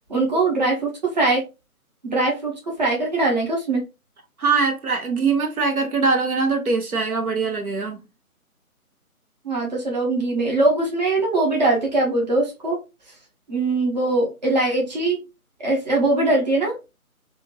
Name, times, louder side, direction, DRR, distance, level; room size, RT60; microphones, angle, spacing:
voice 1, 0.1-1.4 2.0-3.8 9.4-12.8 13.5-15.2 15.6-16.8, right 2 dB, 30° right, 0.8 m, -21 dB
voice 2, 4.4-8.0, right 4 dB, 75° right, 1.0 m, -22 dB
2.6 x 2.5 x 3.0 m
figure-of-eight pair, 160°, 44 cm